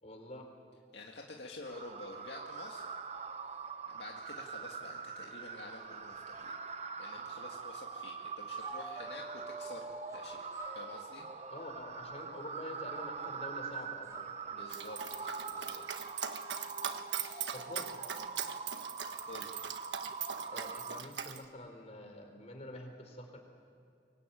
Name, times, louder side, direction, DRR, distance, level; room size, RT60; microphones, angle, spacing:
voice 1, 0.0-0.5 11.5-14.3 17.5-18.0 20.5-23.4, left 1 dB, 40° left, 4 dB, 4.3 m, -47 dB
voice 2, 0.9-2.9 3.9-6.6 7.0-11.3 14.5-16.5 17.2-17.6 19.1-19.6, left 2 dB, 70° left, 0 dB, 2.1 m, -50 dB
sound 1, 1.7-21.0, right 5 dB, 40° right, 1.0 m, -44 dB
sound 2, 8.6-10.2 10.5-13.6 14.0-18.1, right 2 dB, 20° right, 5.6 m, -51 dB
Dog, 14.7-21.4, right 8 dB, 85° right, 1.4 m, -40 dB
24.5 x 22.5 x 9.2 m, 2.7 s
head